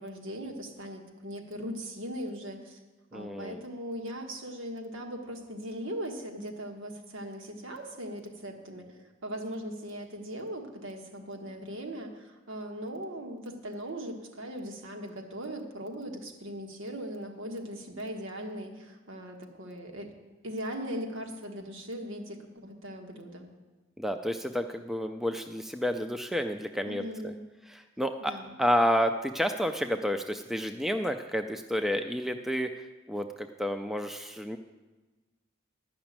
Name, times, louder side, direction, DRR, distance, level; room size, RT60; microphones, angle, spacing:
voice 1, 0.0-2.8 3.1-20.1 20.4-23.5 26.8-27.4 28.2-28.6, equal, 80° right, 3 dB, 1.5 m, -39 dB
voice 2, 3.1-3.6 24.0-27.3 27.7-28.3 28.6-32.7 33.1-34.6, equal, ahead, 6 dB, 0.3 m, -30 dB
11.0 x 6.0 x 8.7 m, 1.2 s
head